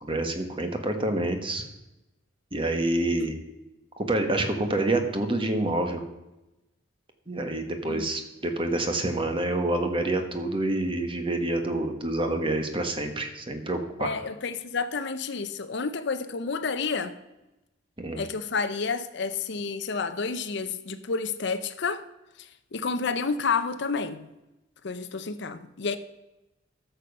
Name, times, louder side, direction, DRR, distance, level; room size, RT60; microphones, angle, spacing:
voice 1, 0.0-1.6 2.5-3.4 4.0-6.0 7.3-14.1 18.0-18.2, right 2 dB, 25° right, 1.3 m, -27 dB
voice 2, 14.0-17.1 18.1-22.0 22.4-24.3 24.8-26.0, left 4 dB, 60° left, 0.6 m, -30 dB
12.5 x 6.9 x 5.4 m
head